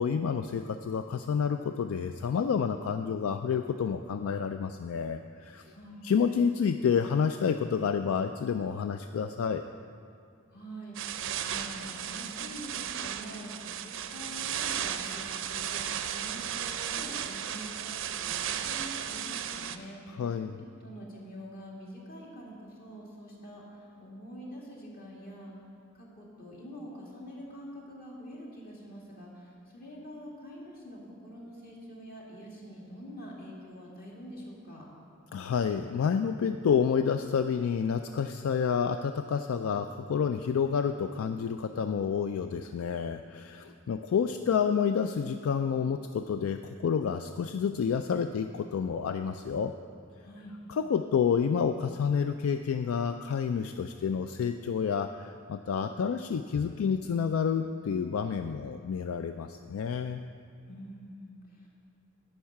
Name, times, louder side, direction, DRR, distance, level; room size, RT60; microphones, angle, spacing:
voice 1, 0.0-5.6 6.0-9.6 20.2-20.6 35.3-49.7 50.7-60.2, left 6 dB, 75° left, 8 dB, 0.3 m, -29 dB
voice 2, 5.7-6.1 10.5-20.3 20.6-25.5 25.9-34.9 50.2-50.6 60.7-61.7, equal, 45° left, -4 dB, 2.3 m, -45 dB
sound 1, 10.9-19.8, right 9 dB, 65° right, 0.5 m, -35 dB
10.5 x 5.5 x 8.4 m, 2.4 s
head